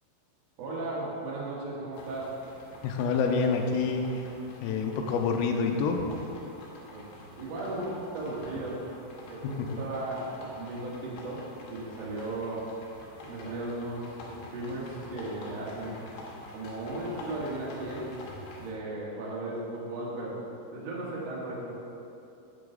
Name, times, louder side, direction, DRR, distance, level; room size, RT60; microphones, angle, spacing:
voice 1, 0.6-2.4 6.9-8.8 9.3-12.7 13.2-16.0 16.5-18.1 18.6-21.7, right 2 dB, 75° right, -6 dB, 1.5 m, -36 dB
sound 1, 1.9-18.7, left 2 dB, 70° left, 2.4 m, -47 dB
voice 2, 2.8-4.3 4.6-6.1 9.4-9.8, left 5 dB, 85° left, 3 dB, 2.5 m, -27 dB
8.5 x 7.9 x 3.9 m, 2.7 s
omnidirectional pair, 5.7 m